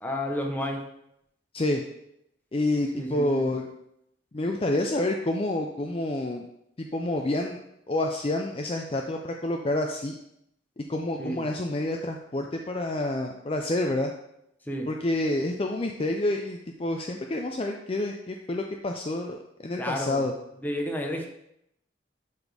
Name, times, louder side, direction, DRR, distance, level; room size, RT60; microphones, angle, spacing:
voice 1, 0.0-0.8 2.9-3.6 11.2-11.4 14.6-14.9 19.8-20.2 20.6-21.3, equal, 10° left, 1 dB, 0.9 m, -31 dB
voice 2, 2.5-3.6 4.3-6.4 6.8-7.6 7.9-10.1 10.8-14.1 14.9-20.3, left 1 dB, 30° left, 2 dB, 0.5 m, -28 dB
11.5 x 4.1 x 3.4 m, 0.79 s
head